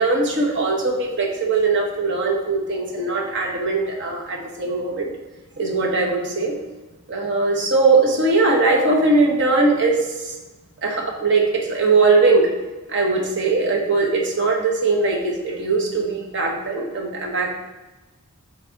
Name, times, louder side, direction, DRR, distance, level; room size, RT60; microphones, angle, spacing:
voice 1, 0.0-5.1 5.6-6.5 7.1-10.3 10.8-12.5 12.9-17.6, right 3 dB, 55° right, 0 dB, 1.1 m, -20 dB
6.2 x 3.4 x 4.6 m, 1.2 s
head